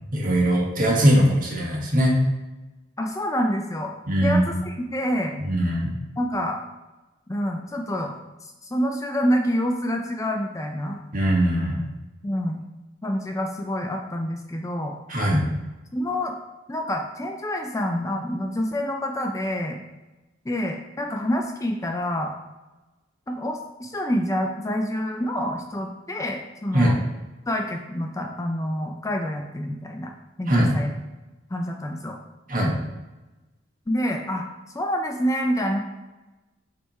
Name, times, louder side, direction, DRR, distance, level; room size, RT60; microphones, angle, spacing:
voice 1, 0.1-2.2 4.1-4.4 5.5-5.9 11.1-11.8 15.1-15.4 26.7-26.9 30.5-30.7 32.5-32.7, equal, 45° right, -2 dB, 1.6 m, -20 dB
voice 2, 3.0-3.9 4.2-5.3 6.2-6.6 7.3-8.1 8.6-11.0 12.2-12.6 13.0-15.0 15.9-16.3 16.7-19.8 20.5-22.3 23.3-27.0 27.5-30.1 30.4-30.9 31.5-32.2 33.9-34.5 34.7-35.8, equal, 15° left, 3 dB, 0.5 m, -27 dB
7.4 x 3.6 x 4.2 m, 1.1 s
head